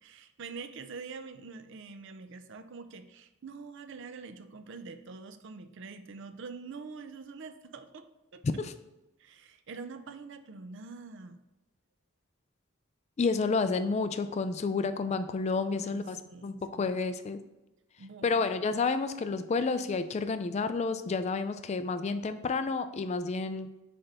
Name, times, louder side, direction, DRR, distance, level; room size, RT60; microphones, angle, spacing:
voice 1, 0.0-8.1 8.3-8.4 9.2-11.4 15.6-17.0 18.0-18.4, right 4 dB, 60° right, 9 dB, 0.5 m, -45 dB
voice 2, 13.2-16.2 16.4-17.4 18.2-23.7, left 4 dB, 30° left, 10 dB, 0.3 m, -30 dB
7.7 x 3.4 x 4.1 m, 0.98 s
head